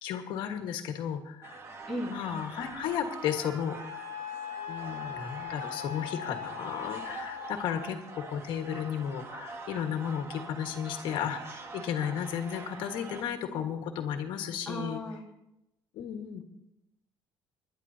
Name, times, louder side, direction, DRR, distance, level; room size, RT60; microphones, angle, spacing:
voice 1, 0.0-1.6 2.1-4.0 4.7-8.0 8.3-15.0 15.9-16.4, left 8 dB, 65° left, 5 dB, 1.5 m, -34 dB
sound 1, 1.4-13.2, right 3 dB, 30° right, 1.0 m, -44 dB
Wind instrument woodwind instrument, 3.7-7.6, left 9 dB, 50° right, 5.3 m, -40 dB
voice 2, 14.6-15.2, equal, 5° left, -3 dB, 1.5 m, -35 dB
26.0 x 11.0 x 2.8 m, 0.90 s
cardioid pair, 165°, 9 cm